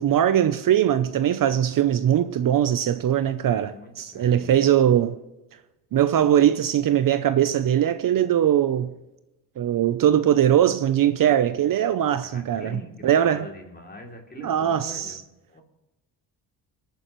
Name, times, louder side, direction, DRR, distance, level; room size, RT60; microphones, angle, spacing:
voice 1, 0.0-5.2 5.9-8.9 9.6-13.5 14.4-15.2, right 10 dB, 50° right, 0.6 m, -21 dB
voice 2, 3.5-4.9 12.2-15.6, left 2 dB, 25° left, 2.8 m, -44 dB
26.5 x 9.2 x 3.1 m
cardioid pair, 100°, 42 cm